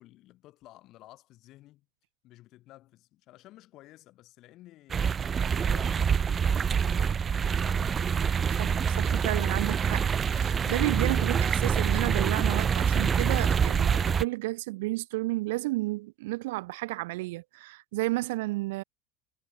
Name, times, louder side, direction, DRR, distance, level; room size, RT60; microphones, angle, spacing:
voice 1, 0.0-1.9 2.2-8.2, left 16 dB, 40° left, 5.3 m, -54 dB
sound 1, 4.9-14.2, right 7 dB, 20° right, 0.4 m, -26 dB
voice 2, 8.6-18.8, right 20 dB, 80° right, 1.2 m, -32 dB
supercardioid pair, 155°, 0 cm